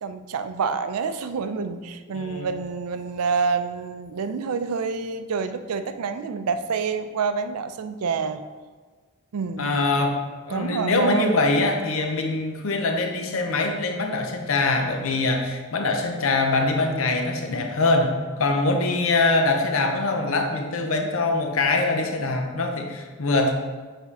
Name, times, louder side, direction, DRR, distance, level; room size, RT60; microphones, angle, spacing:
voice 1, 0.0-8.4 9.3-9.8 10.5-11.4, right 5 dB, 85° right, 9 dB, 0.4 m, -27 dB
voice 2, 2.1-2.5 9.6-10.2 10.5-23.5, left 3 dB, 65° left, 4 dB, 0.7 m, -23 dB
7.1 x 3.6 x 4.1 m, 1.4 s
head